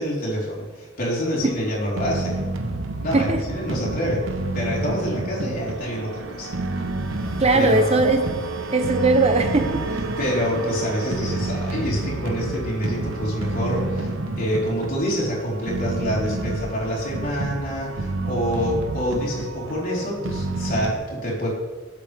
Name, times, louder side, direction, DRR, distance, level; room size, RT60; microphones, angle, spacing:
voice 1, 0.0-2.4 3.0-4.2 4.5-6.5 7.2-7.9 10.2-21.5, equal, 45° left, -4 dB, 4.2 m, -27 dB
sound 1, 1.4-20.9, right 2 dB, 75° right, 1.1 m, -29 dB
voice 2, 7.4-8.3 8.7-9.8, right 3 dB, 30° right, 7 dB, 0.8 m, -19 dB
20.5 x 8.3 x 3.5 m, 1.4 s
head